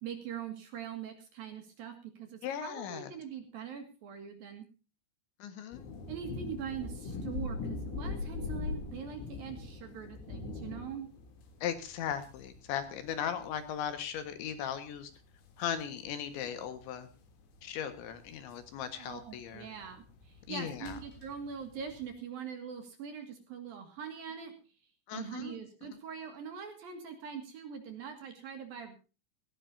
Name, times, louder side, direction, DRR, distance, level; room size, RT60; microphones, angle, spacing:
voice 1, 0.0-4.7 6.1-11.1 19.0-24.5 25.1-29.0, right 7 dB, 55° right, 6 dB, 3.2 m, -43 dB
voice 2, 2.4-3.1 5.4-5.9 11.6-15.1 15.6-17.1 17.6-19.7 20.5-21.0 25.1-25.6, left 9 dB, 70° left, 9 dB, 3.6 m, -37 dB
sound 1, 5.7-22.1, left 4 dB, 85° left, 5.8 m, -43 dB
18.5 x 17.5 x 2.7 m, 0.33 s
omnidirectional pair, 5.9 m